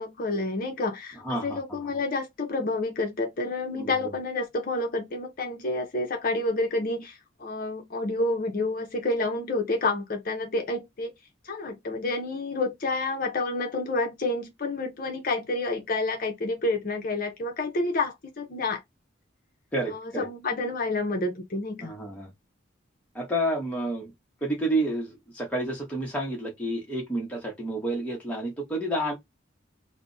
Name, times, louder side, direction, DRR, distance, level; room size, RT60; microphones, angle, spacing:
voice 1, 0.0-11.1 11.4-18.8 19.9-21.9, left 2 dB, 45° left, 0.6 m, -29 dB
voice 2, 1.2-1.6 3.7-3.9 19.7-20.3 21.8-22.3 23.1-24.1 24.4-29.1, right 1 dB, 5° left, 0.7 m, -29 dB
2.4 x 2.0 x 3.7 m
head